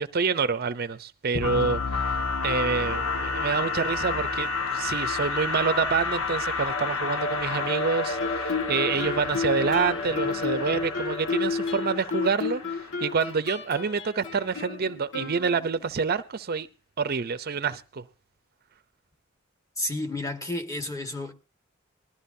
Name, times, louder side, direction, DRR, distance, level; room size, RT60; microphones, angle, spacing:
voice 1, 0.0-2.2 2.4-16.7 17.0-18.0, right 5 dB, 50° right, 0.6 m, -27 dB
sound 1, 1.3-13.1, left 4 dB, 80° left, 1.4 m, -30 dB
Guitar, 8.2-15.9, left 5 dB, 65° left, 1.7 m, -32 dB
voice 2, 19.8-21.3, left 2 dB, 15° left, 1.6 m, -31 dB
20.0 x 13.0 x 2.7 m
head